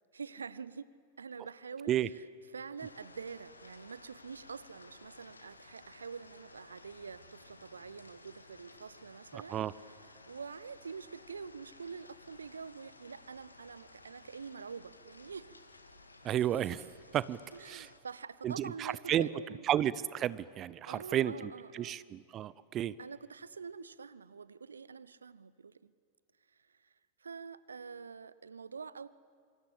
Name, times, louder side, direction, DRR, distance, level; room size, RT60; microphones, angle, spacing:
voice 1, 0.1-0.9 1.2-2.2 2.5-9.6 10.3-15.6 17.5-19.6 20.9-22.0 23.0-25.9 26.7-26.9 27.2-29.1, right 5 dB, 75° right, 18 dB, 0.8 m, -46 dB
sound 1, 2.8-18.0, left 2 dB, 80° left, 2.0 m, -56 dB
voice 2, 9.3-9.7 16.2-16.9 17.1-17.4 17.6-17.9 18.4-19.3 19.7-22.9, right 11 dB, 30° right, 19 dB, 0.7 m, -32 dB
27.5 x 25.0 x 8.7 m, 2.3 s
figure-of-eight pair, 90°, 0 cm